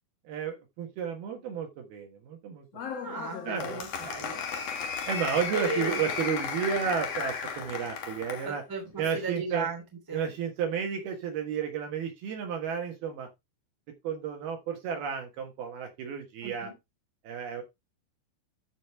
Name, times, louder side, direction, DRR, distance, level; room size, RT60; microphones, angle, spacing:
voice 1, 0.3-2.7 3.4-4.3 5.1-8.6 9.0-9.7 10.1-13.3 14.0-16.7 17.2-17.6, right 7 dB, 65° right, 3 dB, 3.0 m, -32 dB
Applause, 2.7-8.5, left 6 dB, 75° left, 1.4 m, -34 dB
voice 2, 3.0-3.4 3.7-4.4 5.5-5.9 8.4-9.8 10.1-10.3 16.4-16.7, right 3 dB, 5° right, 0 dB, 2.3 m, -36 dB
13.5 x 5.2 x 3.4 m, 0.22 s
omnidirectional pair, 5.3 m